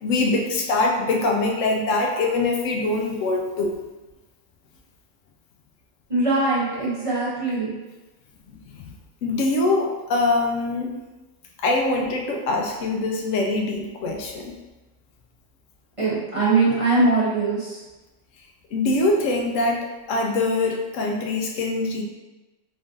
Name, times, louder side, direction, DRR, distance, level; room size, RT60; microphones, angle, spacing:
voice 1, 0.0-3.8 8.7-8.9 9.2-11.0 11.6-14.6 18.7-22.0, left 2 dB, 75° left, 1 dB, 1.0 m, -23 dB
voice 2, 6.1-7.7 16.0-17.8, right 3 dB, 30° right, -8 dB, 0.8 m, -21 dB
3.7 x 2.4 x 3.7 m, 1.1 s
omnidirectional pair, 1.4 m